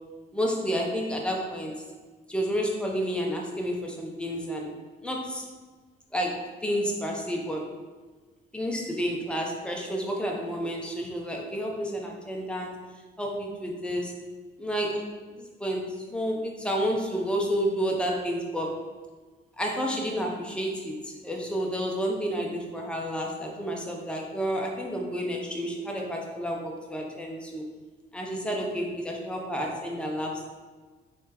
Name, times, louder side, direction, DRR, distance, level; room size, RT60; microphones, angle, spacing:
voice 1, 0.3-1.7 2.3-4.7 5.0-5.4 6.1-6.3 6.6-7.6 8.5-12.7 13.2-14.1 14.6-15.0 15.4-15.8 16.1-18.7 19.6-27.6 28.1-30.4, equal, 5° left, 0 dB, 0.7 m, -30 dB
3.5 x 3.3 x 2.9 m, 1.4 s
cardioid pair, 90°, 20 cm